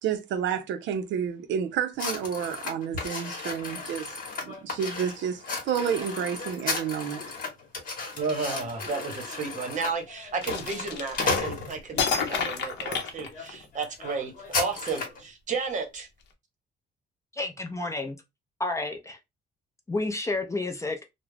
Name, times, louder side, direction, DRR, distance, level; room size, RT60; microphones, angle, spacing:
voice 1, 0.0-4.1 4.4-7.2, right 8 dB, 75° right, 0.5 m, -30 dB
sound 1, 2.0-12.1 12.7-12.9 13.3-13.5 13.7-15.2, left 3 dB, 45° left, 1.0 m, -34 dB
voice 2, 8.1-16.1, right 4 dB, 40° right, 0.8 m, -32 dB
sound 2, 10.4-11.5 12.0-13.8, left 6 dB, 65° left, 0.7 m, -30 dB
voice 3, 17.3-18.2 18.6-19.2 19.9-21.0, left 2 dB, 15° left, 0.4 m, -30 dB
2.3 x 2.0 x 3.2 m
cardioid pair, 135°, 19 cm